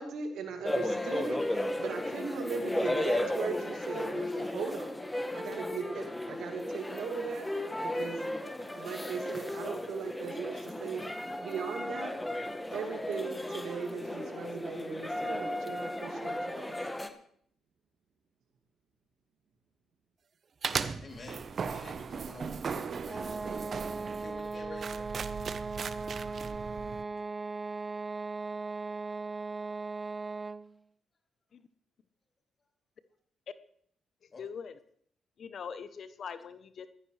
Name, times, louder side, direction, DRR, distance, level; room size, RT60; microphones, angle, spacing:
voice 1, 0.0-5.0 5.3-8.4 8.7-11.0 11.4-12.1 12.7-16.8, right 5 dB, 75° right, 4 dB, 2.3 m, -38 dB
sound 1, 0.6-17.1, left 1 dB, 15° left, 1.6 m, -35 dB
sound 2, 20.6-27.0, right 6 dB, 55° right, 0.9 m, -37 dB
voice 2, 21.0-23.6 24.2-25.1 34.3-34.5, left 3 dB, 45° left, 3 dB, 3.0 m, -49 dB
sound 3, 23.0-30.7, right 3 dB, 30° right, 0.6 m, -38 dB
voice 3, 34.4-34.7 35.4-36.9, left 6 dB, 60° left, 13 dB, 0.8 m, -42 dB
18.0 x 14.5 x 3.3 m, 0.62 s
hypercardioid pair, 50°, 0 cm